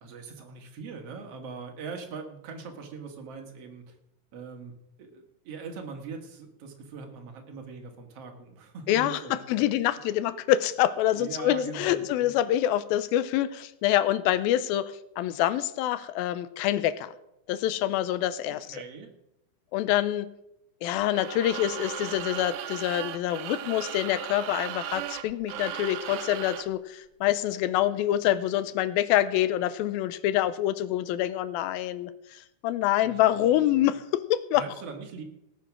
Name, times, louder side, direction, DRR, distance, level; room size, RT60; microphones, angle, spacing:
voice 1, 0.0-4.0 4.3-10.0 11.1-12.4 18.5-19.1 33.0-33.9 34.5-35.2, right 5 dB, 50° right, 3 dB, 2.4 m, -42 dB
voice 2, 8.9-17.1 17.5-18.8 19.7-20.3 20.8-34.8, left 13 dB, 85° left, 14 dB, 2.4 m, -26 dB
sound 1, 21.0-26.8, right 12 dB, 80° right, 2.3 m, -37 dB
18.0 x 7.0 x 6.0 m, 0.84 s
omnidirectional pair, 4.3 m